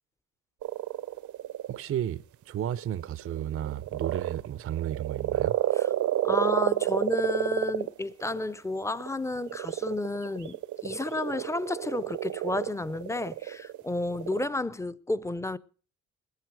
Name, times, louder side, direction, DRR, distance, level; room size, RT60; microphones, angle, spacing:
sound 1, 0.6-1.8 2.7-14.4, right 13 dB, 75° right, 0.8 m, -30 dB
voice 1, 1.7-5.5, right 11 dB, 45° right, 0.6 m, -33 dB
voice 2, 6.2-15.6, left 2 dB, 10° left, 0.6 m, -31 dB
20.5 x 8.7 x 4.7 m
cardioid pair, 90°, 30 cm